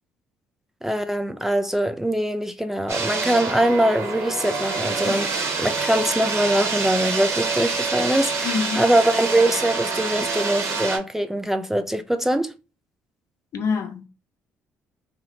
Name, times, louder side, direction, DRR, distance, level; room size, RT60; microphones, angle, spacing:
voice 1, 0.8-5.3 5.6-12.5, right 1 dB, 5° right, 0.3 m, -22 dB
sound 1, 2.9-11.0, right 4 dB, 60° right, 0.8 m, -26 dB
voice 2, 8.4-8.8 13.5-14.1, left 5 dB, 60° left, 0.6 m, -26 dB
2.7 x 2.1 x 2.8 m
supercardioid pair, 60°, 5 cm